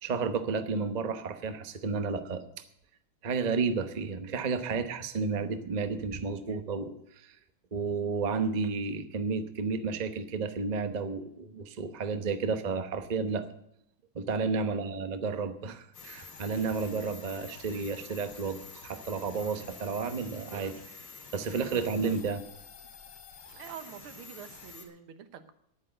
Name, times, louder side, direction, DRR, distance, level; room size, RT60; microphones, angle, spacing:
voice 1, 0.0-2.4 3.2-6.9 7.2-7.3 7.7-13.4 14.1-20.8 21.3-22.4, right 4 dB, 45° right, 8 dB, 0.5 m, -32 dB
sound 1, 15.9-24.9, left 5 dB, 80° left, 3.4 m, -48 dB
voice 2, 23.6-25.5, right 8 dB, 90° right, 10 dB, 1.9 m, -47 dB
10.5 x 9.4 x 7.8 m, 0.74 s
omnidirectional pair, 2.3 m